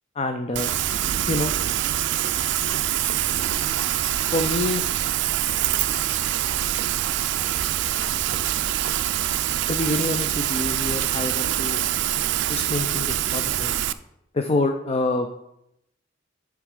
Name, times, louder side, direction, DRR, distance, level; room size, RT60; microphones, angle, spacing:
voice 1, 0.2-0.7 1.3-1.5 4.3-4.8 9.7-11.8 12.5-13.7 14.3-15.3, left 2 dB, 30° left, 6 dB, 0.5 m, -26 dB
Rain, 0.5-13.9, right 12 dB, 65° right, 0.4 m, -25 dB
9.4 x 3.6 x 6.5 m, 0.81 s
head